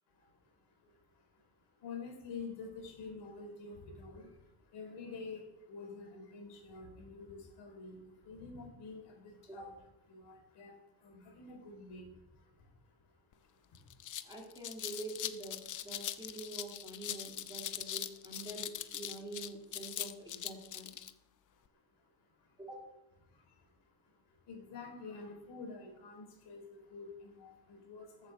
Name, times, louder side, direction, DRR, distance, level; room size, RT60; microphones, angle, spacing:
voice 1, 0.1-9.7 10.1-14.0 21.5-22.6 23.2-28.3, left 4 dB, 60° left, 1 dB, 4.8 m, -49 dB
sound 1, 13.3-13.4 13.7-21.1, left 11 dB, 40° left, 0.7 m, -41 dB
voice 2, 14.2-20.9 22.6-22.8, right 2 dB, 10° right, -2 dB, 2.7 m, -46 dB
14.0 x 8.2 x 7.0 m, 0.92 s
cardioid pair, 165°, 45 cm